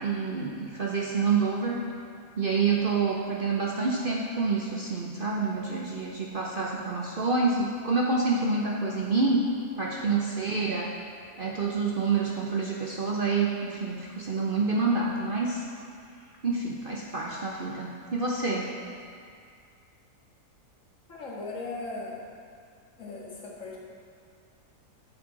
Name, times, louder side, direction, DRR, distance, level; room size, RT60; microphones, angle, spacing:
voice 1, 0.0-1.8 2.4-9.4 9.8-10.9 11.4-15.6 16.4-18.7, right 4 dB, 45° right, -2 dB, 0.7 m, -27 dB
voice 2, 21.1-22.3 23.0-23.8, left 3 dB, 55° left, -5 dB, 2.2 m, -38 dB
8.8 x 5.9 x 7.5 m, 2.2 s
omnidirectional pair, 1.6 m